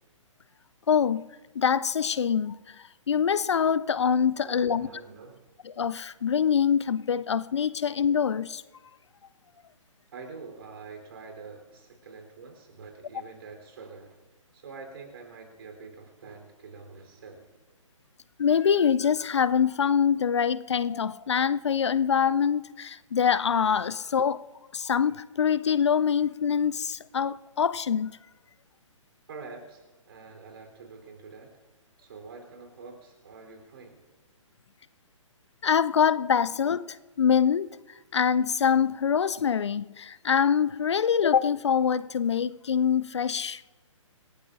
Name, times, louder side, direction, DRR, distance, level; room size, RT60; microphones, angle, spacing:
voice 1, 0.9-1.2 1.6-4.9 5.7-8.6 18.4-24.4 24.7-28.1 35.6-37.7 38.1-43.8, left 7 dB, 60° left, 0.5 m, -24 dB
voice 2, 4.4-5.5 10.1-14.2 14.5-17.6 29.3-31.6 32.0-34.1 36.4-36.5, right 4 dB, 45° right, 3.6 m, -46 dB
27.0 x 16.5 x 2.6 m
figure-of-eight pair, 130°, 17 cm